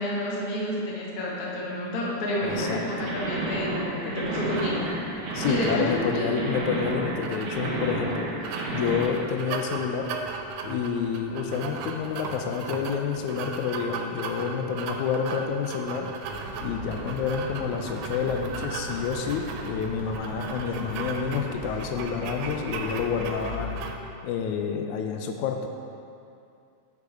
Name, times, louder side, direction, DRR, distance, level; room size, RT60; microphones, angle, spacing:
voice 1, 0.0-6.4, left 1 dB, 60° left, -4 dB, 1.0 m, -30 dB
voice 2, 2.4-3.1 5.3-8.3 8.7-10.1 10.6-16.1 16.6-23.7 24.2-25.7, left 6 dB, 85° left, 4 dB, 1.9 m, -29 dB
sound 1, 2.4-9.0, right 1 dB, 55° right, 1.7 m, -31 dB
sound 2, 4.6-24.0, right 4 dB, 80° right, 1.9 m, -37 dB
sound 3, 16.2-23.8, equal, 35° left, 1.1 m, -39 dB
7.2 x 4.9 x 4.7 m, 2.5 s
omnidirectional pair, 3.4 m